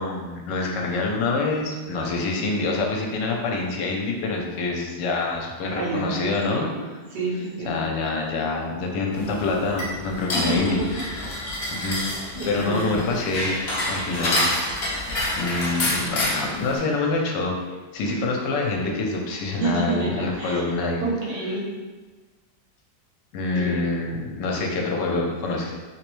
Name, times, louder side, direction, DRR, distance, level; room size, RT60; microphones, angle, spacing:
voice 1, 0.0-6.9 7.6-11.5 11.8-12.1 12.5-13.5 13.9-14.4 14.8-14.9 15.4-17.6 17.9-21.0 23.3-25.7, left 3 dB, 80° left, 0 dB, 1.2 m, -26 dB
voice 2, 5.8-6.8 7.1-7.8 10.3-10.9 12.3-13.0 18.0-18.1 19.6-20.6 21.0-21.6 23.5-23.8 24.4-25.1, right 2 dB, 70° right, -5 dB, 1.4 m, -29 dB
sound 1, 9.1-16.8, left 1 dB, 55° left, 0.7 m, -28 dB
3.2 x 3.0 x 3.1 m, 1.3 s
omnidirectional pair, 1.9 m